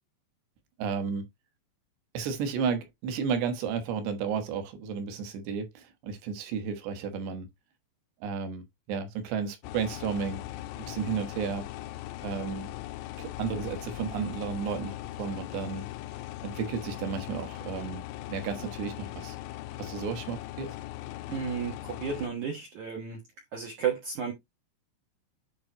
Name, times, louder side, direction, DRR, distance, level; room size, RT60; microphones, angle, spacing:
voice 1, 0.8-1.2 2.1-7.5 8.2-10.4 10.8-11.7 12.2-12.7 13.2-15.9 16.4-18.0 18.3-19.4 19.8-20.7, right 6 dB, 70° right, 2.9 m, -33 dB
sound 1, 9.6-22.3, left 15 dB, 85° left, 2.9 m, -40 dB
voice 2, 21.3-23.2 23.5-24.3, right 7 dB, 85° right, 1.7 m, -33 dB
10.5 x 3.7 x 2.8 m
omnidirectional pair, 5.6 m